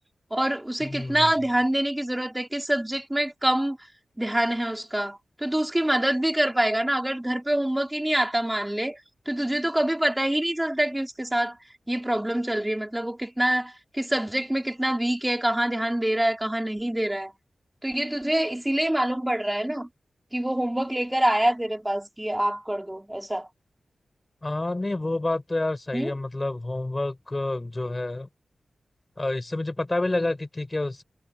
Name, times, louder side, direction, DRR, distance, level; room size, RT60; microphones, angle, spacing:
voice 1, 0.3-3.8 4.2-9.0 9.3-11.6 11.9-17.3 17.8-19.9 20.3-23.5 25.9-26.1, right 1 dB, 15° right, 4.9 m, -25 dB
voice 2, 0.8-1.3 24.4-28.3 29.2-31.0, left 2 dB, 30° left, 6.9 m, -28 dB
cardioid pair, 50°, 0 cm